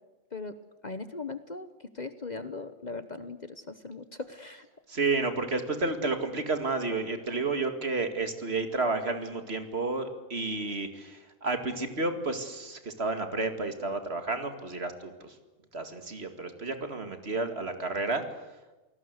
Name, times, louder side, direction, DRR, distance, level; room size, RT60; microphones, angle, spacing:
voice 1, 0.8-4.7, left 3 dB, 35° left, 11 dB, 1.0 m, -39 dB
voice 2, 4.9-15.4 15.7-18.2, right 3 dB, 50° right, 7 dB, 2.4 m, -31 dB
28.5 x 18.5 x 8.1 m, 1.1 s
omnidirectional pair, 1.3 m